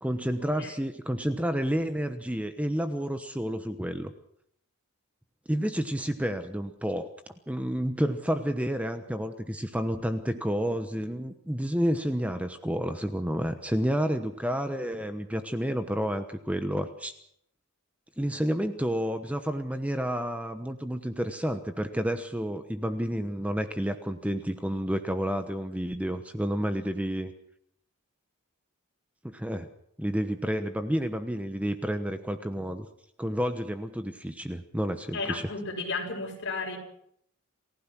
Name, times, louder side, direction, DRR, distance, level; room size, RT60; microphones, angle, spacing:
voice 1, 0.0-4.1 5.5-7.1 7.5-17.1 18.2-27.3 29.3-29.7 30.0-32.9 33.2-35.5, equal, 5° right, 8 dB, 1.1 m, -30 dB
voice 2, 35.1-36.8, left 3 dB, 55° left, 1 dB, 7.0 m, -33 dB
28.5 x 16.0 x 6.2 m, 0.71 s
head